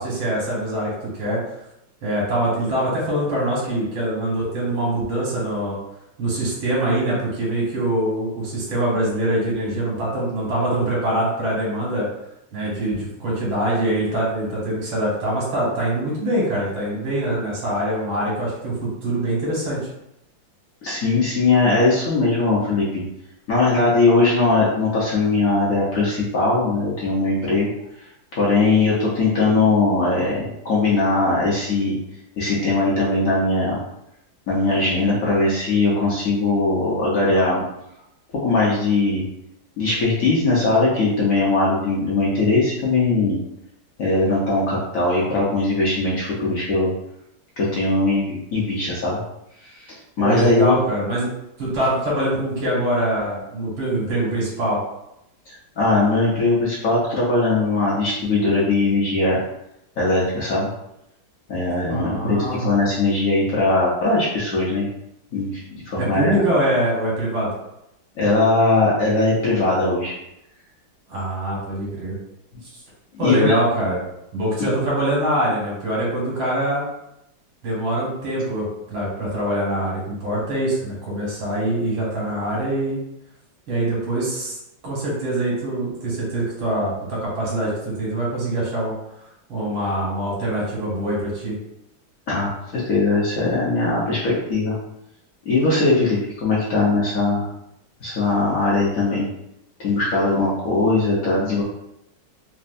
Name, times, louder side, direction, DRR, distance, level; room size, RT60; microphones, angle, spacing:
voice 1, 0.0-1.4 2.0-5.8 6.2-12.1 12.5-19.8 50.2-51.3 51.6-54.8 61.9-62.7 66.0-67.5 71.1-72.2 73.2-74.0 74.3-76.8 77.6-83.0 83.7-84.6 84.8-88.9 89.5-91.6, right 1 dB, 85° right, -5 dB, 2.1 m, -24 dB
voice 2, 20.8-23.0 23.5-27.7 28.4-32.0 32.4-33.8 34.5-37.6 38.4-39.2 39.8-43.4 44.0-46.9 47.6-49.2 49.8-50.7 55.8-59.4 60.0-60.7 61.5-64.9 65.3-66.3 68.2-70.2 73.1-73.5 92.3-94.7 95.5-97.5 98.0-99.3 99.8-101.6, left 3 dB, 60° left, -6 dB, 0.9 m, -20 dB
4.1 x 2.1 x 2.6 m, 0.82 s
omnidirectional pair, 2.1 m